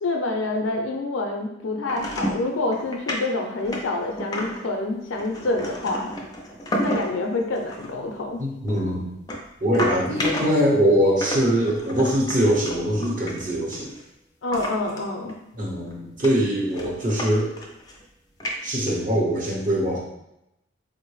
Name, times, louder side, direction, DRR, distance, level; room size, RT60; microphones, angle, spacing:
voice 1, 0.0-6.1 6.8-8.4 14.4-15.3, left 2 dB, 85° left, 2 dB, 0.5 m, -27 dB
sound 1, 1.9-2.4 2.7-3.2 3.6-4.7 5.1-7.2 7.6-7.9 8.7-10.7 11.2-14.0 14.5-15.0 15.3-15.4 15.9-16.0 16.2-17.3 17.6-18.0 18.4-19.0, equal, 20° left, 0.3 m, -31 dB
voice 2, 8.4-9.0 9.6-13.9 15.6-17.5 18.6-20.0, equal, 45° right, -4 dB, 0.8 m, -22 dB
3.7 x 2.0 x 3.1 m, 0.84 s
head